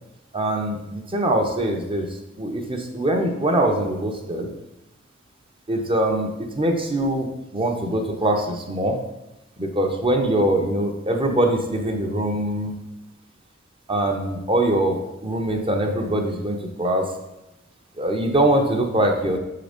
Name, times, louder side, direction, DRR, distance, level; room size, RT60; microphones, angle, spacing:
voice 1, 0.3-4.5 5.7-7.3 7.5-9.0 9.6-12.8 13.9-17.1 18.0-19.4, right 1 dB, 25° right, 3 dB, 0.8 m, -23 dB
6.2 x 3.8 x 5.2 m, 0.95 s
head